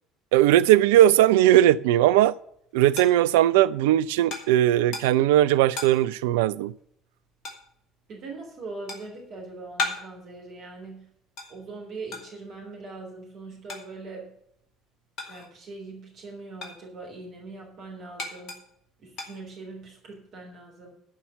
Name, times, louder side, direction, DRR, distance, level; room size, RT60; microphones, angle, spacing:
voice 1, 0.3-2.3 2.7-6.7, right 13 dB, 65° right, 0.3 m, -19 dB
sound 1, 2.0-15.8 16.1-20.0, left 3 dB, 50° left, 2.4 m, -39 dB
voice 2, 8.1-11.1 11.5-14.3 15.3-18.6 19.0-20.9, right 3 dB, 50° right, 3.4 m, -41 dB
12.0 x 5.7 x 6.9 m
figure-of-eight pair, 60°, 0 cm